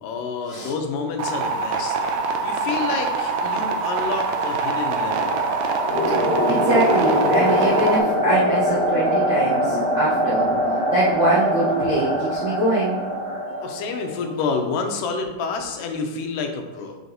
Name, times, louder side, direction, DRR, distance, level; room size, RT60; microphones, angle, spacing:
voice 1, 0.0-2.0 2.4-5.4 13.6-17.0, left 4 dB, 80° left, 4 dB, 2.3 m, -28 dB
sound 1, 1.2-8.0, right 4 dB, 85° right, 1.6 m, -24 dB
sound 2, 3.5-14.3, equal, 35° right, 0.9 m, -24 dB
sound 3, 5.9-11.0, left 1 dB, 45° left, 2.5 m, -26 dB
voice 2, 6.5-10.5 10.9-13.0, right 2 dB, 65° right, -9 dB, 1.1 m, -23 dB
6.4 x 6.3 x 2.7 m, 1.1 s
omnidirectional pair, 3.9 m